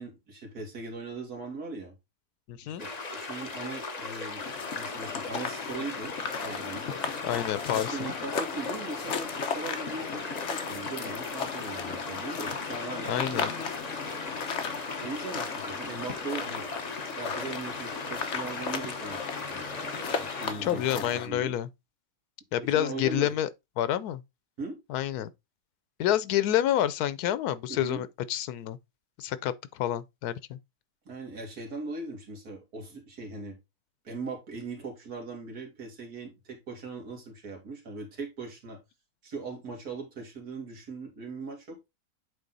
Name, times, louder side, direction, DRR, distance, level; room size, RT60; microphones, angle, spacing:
voice 1, 0.0-2.0 2.6-6.1 6.4-6.9 7.7-13.7 15.0-16.7 17.2-19.2 19.5-21.5 22.6-23.3 24.6-24.8 27.7-28.0 31.1-33.6 34.0-38.8 39.2-41.9, right 3 dB, 80° right, 2.5 m, -39 dB
voice 2, 2.5-2.8 7.2-8.1 13.1-13.5 20.6-21.7 22.5-23.5 23.8-24.2 24.9-25.3 26.0-28.8 29.2-30.6, left 12 dB, 90° left, 1.2 m, -28 dB
sound 1, 2.8-20.5, left 3 dB, 30° left, 1.0 m, -38 dB
sound 2, 4.4-21.3, left 5 dB, 55° left, 1.2 m, -36 dB
8.3 x 3.5 x 3.9 m
omnidirectional pair, 1.6 m